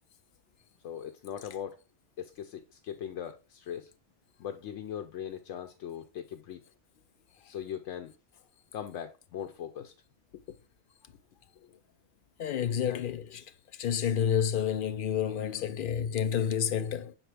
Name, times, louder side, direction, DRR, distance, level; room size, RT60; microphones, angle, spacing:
voice 1, 0.8-1.8 2.2-3.9 4.4-6.6 7.5-8.1 8.7-9.9 11.6-11.8 12.9-13.0, left 9 dB, 85° left, 0.9 m, -40 dB
voice 2, 12.4-13.4 13.7-17.2, left 8 dB, 60° left, 0.6 m, -29 dB
6.4 x 4.4 x 3.3 m
omnidirectional pair, 1.2 m